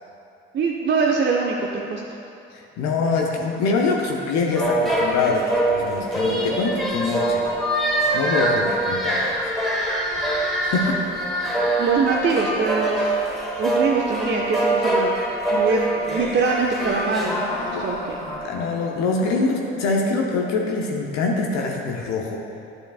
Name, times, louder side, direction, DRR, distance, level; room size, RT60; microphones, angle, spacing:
voice 1, 0.5-1.6 1.9-2.0 11.8-13.2 13.6-15.1 15.5-18.2, right 4 dB, 35° right, -1 dB, 0.7 m, -23 dB
voice 2, 2.5-7.5 8.1-9.3 10.6-11.0 17.7-17.8 18.4-22.4, left 3 dB, 60° left, 0 dB, 0.8 m, -24 dB
sound 1, 4.5-18.4, right 1 dB, ahead, 1.5 m, -24 dB
10.5 x 6.6 x 2.4 m, 2.7 s
hypercardioid pair, 50°, 30 cm